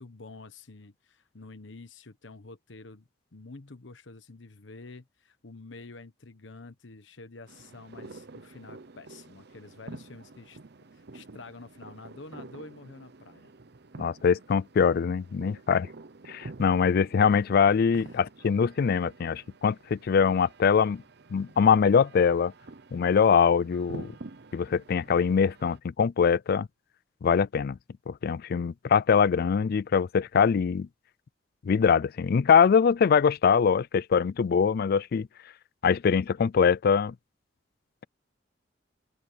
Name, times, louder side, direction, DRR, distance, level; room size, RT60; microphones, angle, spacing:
voice 1, 0.0-10.6 10.9-13.5 17.9-18.3, left 3 dB, 80° left, 1.1 m, -48 dB
sound 1, 7.5-25.8, right 3 dB, 60° right, 0.8 m, -48 dB
voice 2, 14.0-15.9 16.3-21.0 21.3-22.5 22.9-24.1 24.5-26.7 27.2-27.8 28.1-30.9 31.6-35.3 35.8-37.1, left 6 dB, 55° left, 0.4 m, -23 dB
open air
head